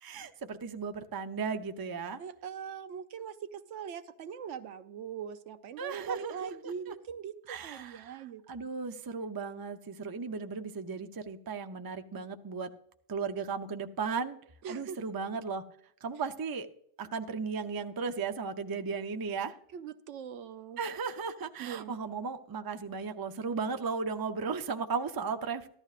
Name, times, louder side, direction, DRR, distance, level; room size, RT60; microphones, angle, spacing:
voice 1, 0.0-2.2 5.8-6.7 7.5-12.7 13.1-14.4 14.7-15.6 16.0-16.7 17.0-19.6 20.8-25.7, right 5 dB, 30° right, 7 dB, 0.4 m, -36 dB
voice 2, 2.2-8.4 14.6-15.0 19.7-20.8 21.6-21.9, right 8 dB, 90° right, 10 dB, 1.0 m, -41 dB
14.5 x 11.5 x 2.4 m, 0.67 s
omnidirectional pair, 1.2 m